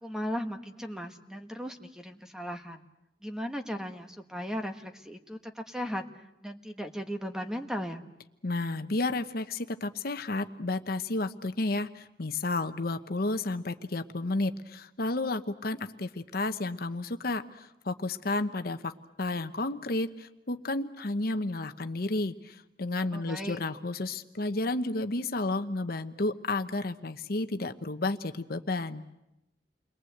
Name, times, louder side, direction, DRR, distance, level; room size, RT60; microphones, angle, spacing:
voice 1, 0.0-2.8 3.2-8.0 23.1-23.6, equal, 5° right, 5 dB, 1.4 m, -37 dB
voice 2, 8.4-18.9 19.2-29.0, left 2 dB, 60° left, 8 dB, 1.0 m, -32 dB
29.5 x 22.5 x 8.0 m, 0.92 s
head